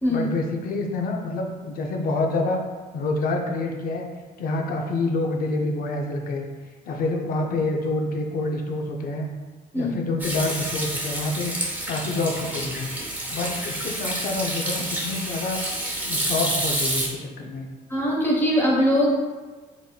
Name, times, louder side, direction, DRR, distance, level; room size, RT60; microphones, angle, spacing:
voice 1, 0.1-2.6 2.9-4.1 4.4-6.5 6.9-9.3 9.7-11.5 11.9-12.9 13.3-15.6 16.0-17.7, left 2 dB, 60° left, 2 dB, 0.6 m, -27 dB
Hands / Sink (filling or washing), 10.2-17.1, right 1 dB, 10° right, 0.8 m, -29 dB
voice 2, 17.9-19.1, equal, 15° left, -4 dB, 1.1 m, -21 dB
4.0 x 3.6 x 2.3 m, 1.3 s
cardioid pair, 110°, 17 cm